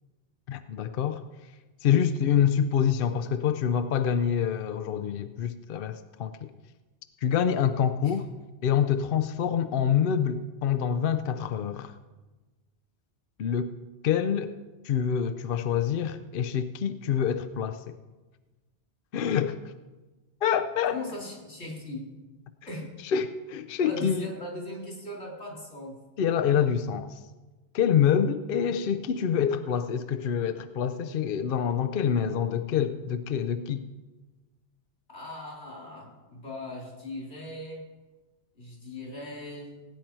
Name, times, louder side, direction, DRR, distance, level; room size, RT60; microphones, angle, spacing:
voice 1, 0.5-1.2 1.8-6.5 7.2-8.2 8.6-11.9 13.4-13.7 14.0-14.5 14.8-18.0 19.1-19.6 20.4-21.0 23.0-24.3 26.2-27.2 27.7-33.8, left 8 dB, 60° left, 9 dB, 0.7 m, -26 dB
voice 2, 20.9-22.1 22.7-22.9 23.8-26.0 35.1-37.8 38.6-39.7, left 1 dB, 80° left, -2 dB, 3.5 m, -39 dB
17.0 x 9.2 x 4.5 m, 1.2 s
omnidirectional pair, 1.1 m